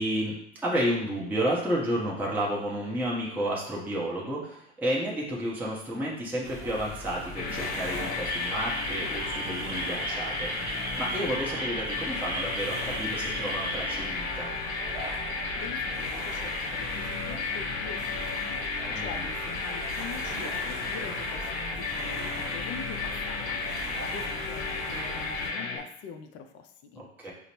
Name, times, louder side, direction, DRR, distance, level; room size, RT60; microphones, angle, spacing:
voice 1, 0.0-14.5 18.9-19.3 27.0-27.3, right 1 dB, 5° right, -5 dB, 0.7 m, -31 dB
sound 1, 6.4-25.5, right 1 dB, 40° right, 1.0 m, -41 dB
sound 2, 7.3-25.8, left 4 dB, 50° left, 0.8 m, -33 dB
sound 3, 8.2-14.1, right 4 dB, 80° right, 0.7 m, -38 dB
voice 2, 15.6-27.3, left 6 dB, 35° left, 6 dB, 0.4 m, -44 dB
5.0 x 2.1 x 2.9 m, 0.77 s
hypercardioid pair, 100°, 33 cm